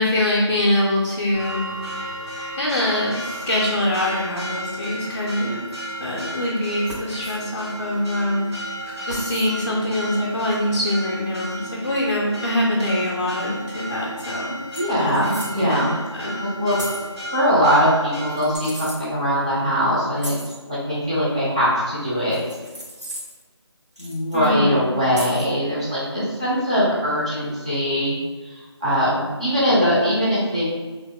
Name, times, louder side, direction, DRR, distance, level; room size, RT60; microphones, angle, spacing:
voice 1, 0.0-1.6 2.6-5.6 6.0-8.7 9.0-14.6 15.0-16.3 24.3-24.9, left 1 dB, 40° left, -4 dB, 0.4 m, -24 dB
Church bell, 1.3-18.6, equal, 65° right, 1.1 m, -33 dB
sound 1, 6.9-7.4 9.1-9.5 11.5-11.6 13.9-14.0 14.2-14.3 14.7-15.6 16.8-17.1 18.3-19.0 20.2-20.6 22.3-23.4 24.0-24.5 25.1-25.5, equal, 85° right, 1.3 m, -35 dB
voice 2, 14.7-15.9 16.2-16.9 17.3-20.3 20.7-22.4 24.0-28.2 28.4-30.6, equal, 15° right, -8 dB, 0.5 m, -21 dB
2.9 x 2.0 x 3.5 m, 1.3 s
figure-of-eight pair, 165°, 15 cm